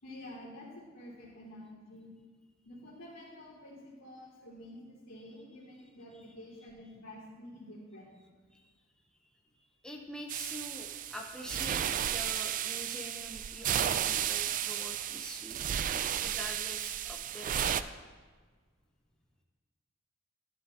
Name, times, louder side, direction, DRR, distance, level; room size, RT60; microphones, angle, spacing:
voice 1, 0.0-2.1 2.6-8.1, left 1 dB, 85° left, -5 dB, 3.5 m, -49 dB
voice 2, 9.5-15.6 15.9-18.0, equal, 5° left, 0 dB, 0.7 m, -46 dB
sound 1, 10.3-17.8, right 10 dB, 40° right, 0.3 m, -33 dB
11.5 x 11.5 x 2.8 m, 1.5 s
head